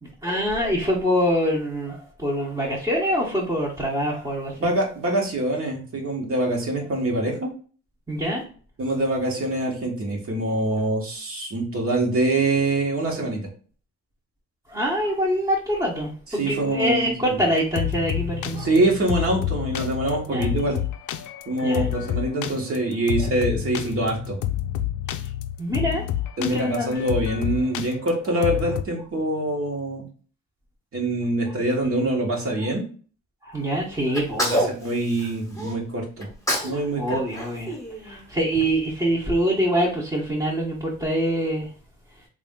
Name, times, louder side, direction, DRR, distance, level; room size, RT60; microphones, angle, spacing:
voice 1, 0.0-4.7 8.1-8.4 10.6-10.9 14.7-18.7 20.0-20.5 21.6-21.9 23.1-23.3 25.6-26.0 26.4-27.0 31.5-31.6 33.4-34.6 36.7-37.8 38.0-41.7, equal, 10° right, -5 dB, 1.0 m, -25 dB
voice 2, 4.6-7.5 8.8-13.5 16.4-17.3 18.6-20.8 21.5-24.4 26.4-30.0 30.9-32.8 34.5-36.3 36.6-37.0, right 2 dB, 50° right, 0 dB, 1.3 m, -24 dB
sound 1, 17.6-28.8, left 12 dB, 75° left, 0.4 m, -29 dB
Sneeze, 34.1-35.7 36.2-36.8 37.1-38.5, equal, 10° left, 1.1 m, -28 dB
3.3 x 2.5 x 3.7 m, 0.40 s
cardioid pair, 90°, 30 cm